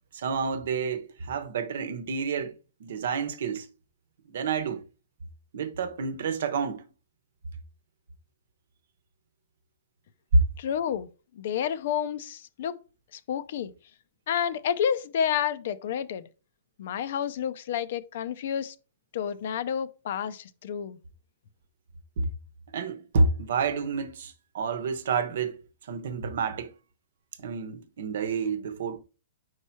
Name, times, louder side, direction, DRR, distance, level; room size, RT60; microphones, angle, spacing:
voice 1, 0.1-2.5 2.8-3.7 4.3-4.8 5.5-6.8 22.2-22.3 22.7-25.6 25.8-26.7 27.4-29.0, right 5 dB, 70° right, 0.8 m, -29 dB
voice 2, 10.6-11.1 11.3-12.8 13.1-13.7 14.3-16.3 16.8-18.7 19.1-21.0, left 8 dB, 65° left, 0.6 m, -30 dB
4.8 x 4.5 x 4.3 m
hypercardioid pair, 135°, 0 cm